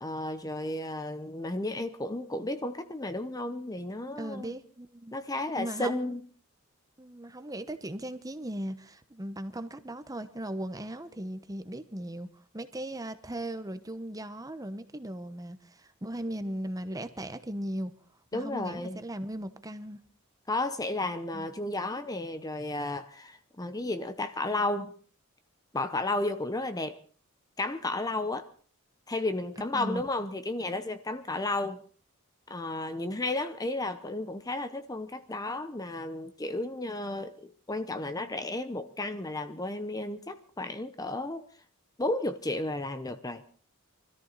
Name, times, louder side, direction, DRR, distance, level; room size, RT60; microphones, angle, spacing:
voice 1, 0.0-4.5 5.1-6.2 18.3-19.0 20.5-24.9 25.7-27.0 27.6-28.5 29.1-31.8 32.5-41.5 42.0-43.4, left 2 dB, 15° left, 10 dB, 0.8 m, -33 dB
voice 2, 4.2-5.1 5.6-6.2 7.0-12.3 12.5-17.9 18.3-20.0 21.3-21.5 29.7-30.0, right 1 dB, 15° right, 11 dB, 1.0 m, -38 dB
24.5 x 14.0 x 4.1 m, 0.41 s
head